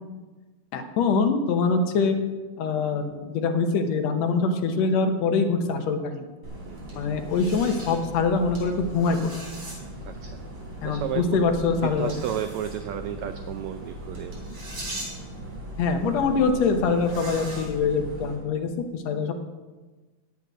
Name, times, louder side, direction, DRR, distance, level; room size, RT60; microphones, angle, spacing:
voice 1, 0.7-2.2 2.6-6.3 7.0-9.3 10.8-12.1 15.8-19.3, left 4 dB, 70° left, 6 dB, 1.7 m, -24 dB
sound 1, 6.4-18.4, right 1 dB, 40° right, 3.9 m, -38 dB
voice 2, 6.7-7.0 10.0-10.4 10.8-11.4 11.7-14.3, right 10 dB, 85° right, 8 dB, 1.6 m, -33 dB
8.5 x 8.2 x 9.1 m, 1.3 s
omnidirectional pair, 3.9 m